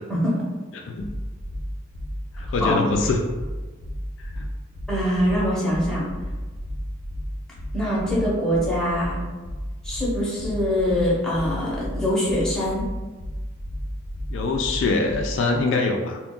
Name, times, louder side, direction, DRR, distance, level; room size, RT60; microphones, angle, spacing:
voice 1, 0.7-1.1 2.3-3.2 4.2-4.5 14.3-16.2, left 3 dB, 65° left, 2 dB, 0.3 m, -24 dB
sound 1, 1.0-15.4, equal, 80° right, 0.7 m, -33 dB
voice 2, 4.9-6.1 7.7-9.2 9.8-12.8, equal, 5° left, -7 dB, 0.7 m, -23 dB
2.3 x 2.2 x 3.7 m, 1.3 s
head